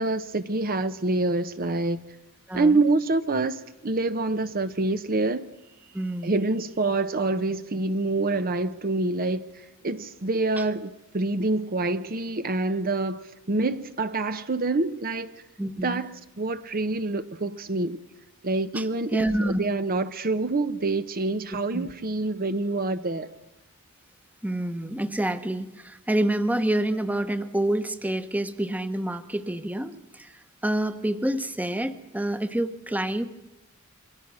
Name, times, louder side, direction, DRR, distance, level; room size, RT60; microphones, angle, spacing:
voice 1, 0.0-2.0 2.5-5.5 6.2-9.5 9.8-15.3 15.8-16.1 16.4-18.0 18.4-23.3, right 2 dB, 45° right, 0.8 m, -26 dB
voice 2, 5.9-6.4 10.6-10.7 15.6-16.0 18.7-18.9 19.1-19.6 21.7-21.9 24.4-30.3 30.6-33.2, right 1 dB, 5° right, 1.1 m, -27 dB
27.0 x 24.0 x 6.3 m
head